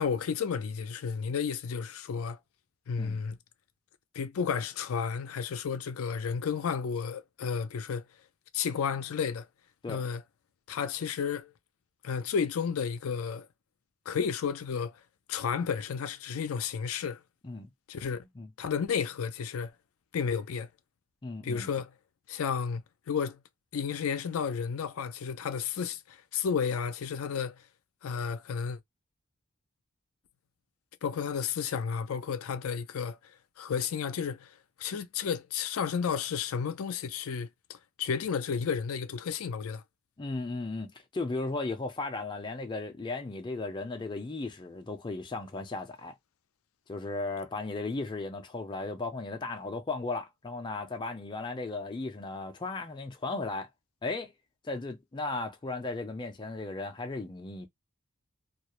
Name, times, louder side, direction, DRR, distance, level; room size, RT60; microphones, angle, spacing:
voice 1, 0.0-2.4 2.9-3.4 4.1-8.0 8.5-9.5 9.9-10.2 10.7-11.5 12.0-13.5 14.1-14.9 15.3-17.2 17.9-18.2 18.6-19.7 20.1-20.7 21.4-21.9 22.3-22.8 23.1-23.4 23.7-27.6 28.0-28.8 31.0-33.2 33.6-39.8, left 6 dB, 80° left, 0.4 m, -32 dB
voice 2, 21.2-21.7 40.2-46.1 46.9-53.7 54.0-54.3 54.6-57.7, left 3 dB, 20° left, 0.4 m, -36 dB
2.3 x 2.0 x 2.9 m
head